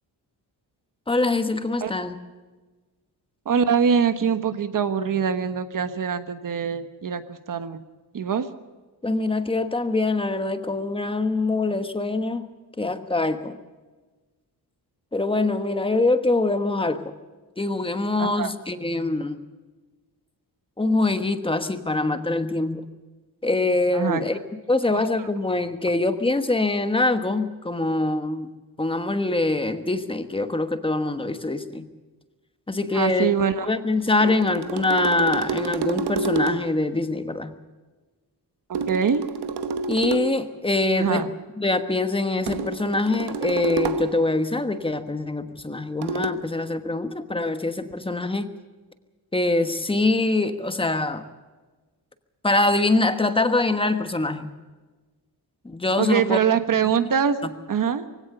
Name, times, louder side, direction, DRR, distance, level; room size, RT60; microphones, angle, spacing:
voice 1, 1.1-2.2 9.0-12.5 12.8-13.6 15.1-17.1 17.6-19.4 20.8-22.8 23.4-24.4 24.7-28.5 28.8-31.9 32.7-33.3 33.6-37.5 39.9-41.3 41.6-48.5 49.3-51.2 52.4-54.5 55.6-56.4, left 2 dB, 15° left, 9 dB, 1.2 m, -24 dB
voice 2, 3.4-7.8 8.1-8.5 18.2-18.5 23.9-24.2 24.9-25.1 32.9-33.7 34.2-34.4 38.7-39.2 41.0-41.3 56.0-57.4 57.7-58.1, right 7 dB, 55° right, 10 dB, 1.4 m, -23 dB
sound 1, 34.0-36.8 38.7-40.5 42.5-44.3 46.0-46.3, right 4 dB, 75° right, 1.3 m, -29 dB
23.0 x 17.0 x 6.8 m, 1.3 s
wide cardioid pair, 165°, 40 cm